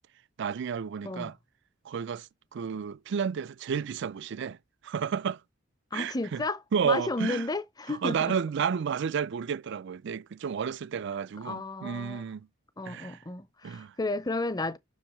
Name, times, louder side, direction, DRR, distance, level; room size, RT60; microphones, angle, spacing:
voice 1, 0.4-1.4 1.9-4.6 4.8-5.4 5.9-6.4 6.7-7.5 7.9-12.5 12.9-13.2 13.6-13.9, right 7 dB, 60° right, 0.4 m, -31 dB
voice 2, 5.9-8.4 11.4-12.2 12.8-14.8, left 2 dB, 20° left, 0.7 m, -33 dB
7.3 x 6.1 x 3.1 m
head